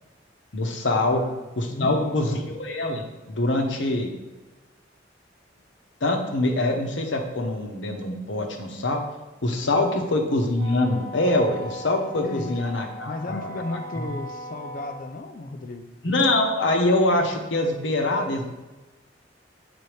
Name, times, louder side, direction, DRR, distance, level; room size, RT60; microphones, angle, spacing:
voice 1, 0.5-1.2 1.6-4.1 6.0-9.0 9.4-14.1 16.0-18.5, left 2 dB, 85° left, 3 dB, 0.9 m, -24 dB
voice 2, 1.1-1.4 1.7-2.5 9.8-10.1 12.2-12.6 13.1-15.9, left 2 dB, 45° left, 7 dB, 0.5 m, -34 dB
Wind instrument woodwind instrument, 10.5-15.1, left 2 dB, 40° right, 1.6 m, -39 dB
7.8 x 4.0 x 3.3 m, 1.1 s
head